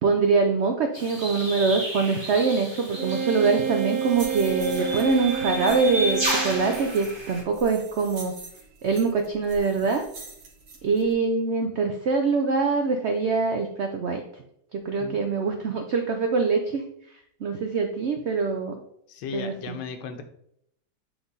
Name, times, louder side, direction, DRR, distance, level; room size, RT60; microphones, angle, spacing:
voice 1, 0.0-8.3 8.8-10.0 10.8-14.2 14.7-16.8 17.4-18.8 19.3-19.8, right 4 dB, 75° right, 4 dB, 0.6 m, -24 dB
sound 1, 0.9-7.4, right 1 dB, 15° right, 1.2 m, -33 dB
Wind instrument woodwind instrument, 3.0-7.0, right 7 dB, 60° right, 1.1 m, -29 dB
sound 2, 3.7-11.1, right 3 dB, 40° right, 1.2 m, -44 dB
voice 2, 19.1-20.2, left 6 dB, 85° left, 7 dB, 1.4 m, -36 dB
8.0 x 3.3 x 4.0 m, 0.73 s
omnidirectional pair, 1.9 m